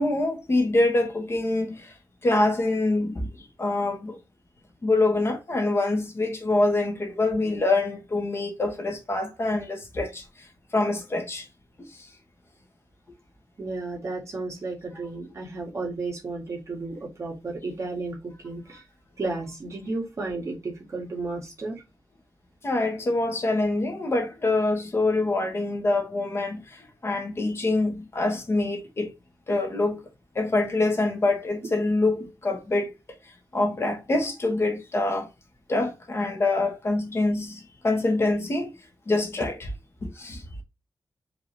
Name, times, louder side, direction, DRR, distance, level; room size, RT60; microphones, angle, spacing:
voice 1, 0.0-1.9 2.2-4.2 4.8-10.5 10.7-11.5 11.8-12.1 22.6-29.1 29.5-30.1 30.3-32.9 33.2-35.3 35.7-38.7 39.1-39.7 40.0-40.4, left 2 dB, 35° left, 1.1 m, -25 dB
voice 2, 13.6-18.8 19.2-21.8, right 3 dB, 45° right, 1.8 m, -33 dB
4.9 x 3.0 x 3.2 m
wide cardioid pair, 175°, 7 cm